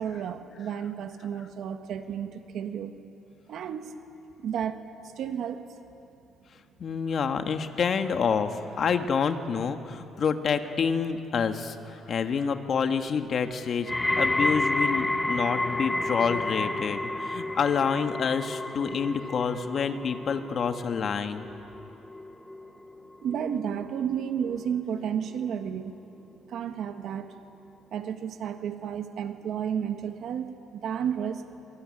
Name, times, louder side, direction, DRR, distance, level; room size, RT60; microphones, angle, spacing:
voice 1, 0.0-3.0 3.5-4.0 4.4-4.8 5.0-5.7 23.2-26.0 26.5-27.3 27.9-31.4, right 8 dB, 60° right, 7 dB, 1.4 m, -32 dB
voice 2, 6.8-21.5, left 6 dB, 40° left, 7 dB, 1.5 m, -28 dB
sound 1, 13.9-25.0 25.3-25.8 26.5-26.6, left 2 dB, 10° left, 0.7 m, -31 dB
24.5 x 23.5 x 9.8 m, 2.8 s
cardioid pair, 145°, 0 cm